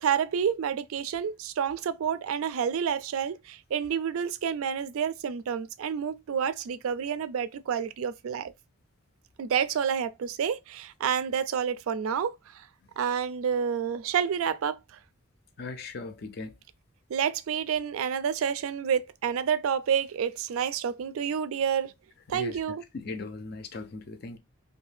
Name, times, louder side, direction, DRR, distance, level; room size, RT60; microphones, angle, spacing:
voice 1, 0.0-8.5 9.4-12.4 13.0-14.8 17.1-21.9 22.3-22.8, right 7 dB, 75° right, 0.3 m, -29 dB
voice 2, 15.6-16.5 22.3-22.6 22.9-24.4, left 3 dB, 45° left, 0.4 m, -38 dB
2.6 x 2.2 x 3.2 m
head